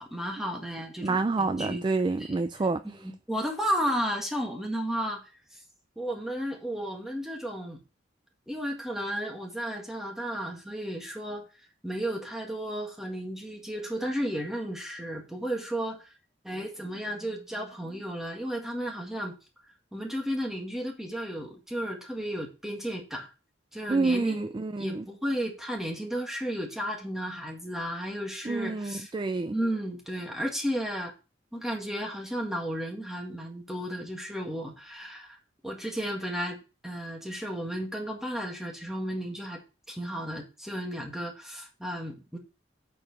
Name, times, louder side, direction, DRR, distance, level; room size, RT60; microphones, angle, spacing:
voice 1, 0.0-1.8 2.2-2.4 2.8-5.2 6.0-7.8 8.5-11.5 11.8-16.1 16.4-19.3 19.9-23.3 23.7-29.1 29.5-31.1 31.5-35.4 35.6-36.6 36.8-39.6 39.9-42.4, equal, ahead, 1.8 m, -33 dB
voice 2, 1.0-2.8 23.9-25.0 28.5-29.5, right 3 dB, 25° right, 0.3 m, -28 dB
8.7 x 4.7 x 4.7 m
head